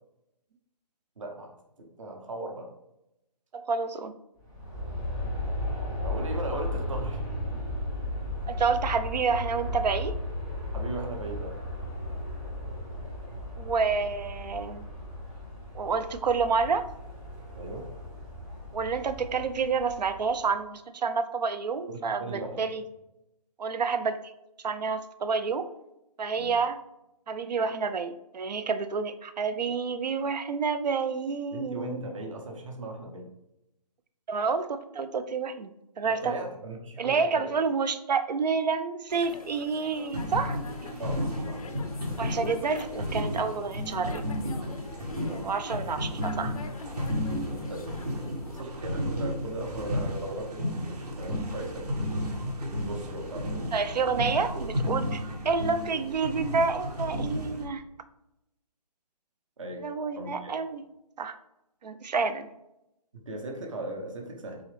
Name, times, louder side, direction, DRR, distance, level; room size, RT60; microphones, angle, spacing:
voice 1, 1.2-1.5 2.0-2.7 6.0-7.2 10.7-11.5 17.6-17.9 21.9-22.6 26.4-26.5 31.5-33.3 36.0-37.5 41.0-41.6 45.3-45.4 47.5-47.9 48.5-52.3 52.8-53.8 59.6-59.8 60.2-60.5 63.3-64.6, right 1 dB, 50° right, 2 dB, 0.9 m, -38 dB
voice 2, 3.5-4.1 8.5-10.2 13.6-14.8 15.7-16.9 18.7-22.8 23.6-24.2 24.6-25.7 26.2-26.8 27.3-32.0 34.3-36.4 37.0-40.6 42.2-44.2 45.4-46.6 53.7-57.8 59.8-60.8 61.2-61.4 61.8-62.5, right 5 dB, 90° right, 11 dB, 0.5 m, -29 dB
Aircraft, 4.4-20.5, left 1 dB, ahead, 0.6 m, -35 dB
sound 1, 39.1-48.6, left 5 dB, 60° left, 0.4 m, -45 dB
sound 2, 40.1-57.6, equal, 75° right, 1.2 m, -33 dB
4.0 x 3.7 x 3.3 m, 0.87 s
hypercardioid pair, 175°, 21 cm